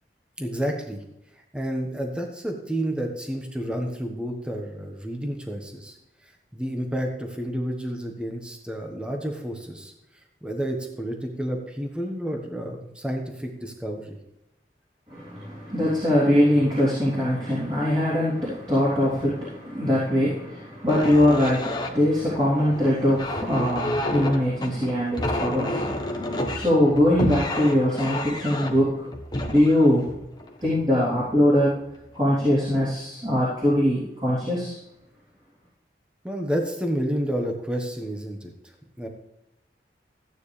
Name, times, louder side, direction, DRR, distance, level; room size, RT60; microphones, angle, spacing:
voice 1, 0.4-1.0 1.5-6.0 6.2-9.9 10.4-14.2 36.2-39.1, equal, 5° right, 2 dB, 1.2 m, -30 dB
voice 2, 15.1-29.0 29.5-30.1 30.6-31.8 32.1-34.8, left 1 dB, 25° right, -9 dB, 3.5 m, -22 dB
sound 1, 20.8-31.1 31.8-32.0 32.4-32.9, left 1 dB, 25° left, 1.2 m, -30 dB
15.0 x 9.2 x 3.4 m, 0.86 s
head